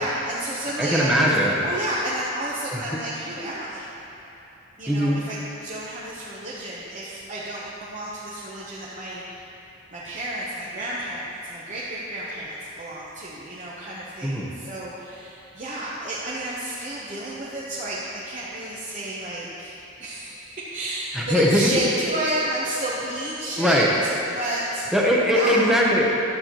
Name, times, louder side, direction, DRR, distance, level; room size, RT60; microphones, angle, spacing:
voice 1, 0.0-1.3 1.6-3.9 4.8-9.5 9.9-24.9 25.3-25.7, right 1 dB, 35° right, -8 dB, 0.8 m, -31 dB
voice 2, 0.8-1.7 2.7-2.9 4.9-5.2 14.2-14.5 21.1-21.7 23.6-23.9 24.9-26.1, equal, ahead, -4 dB, 0.8 m, -20 dB
11.5 x 8.2 x 3.0 m, 3.0 s
head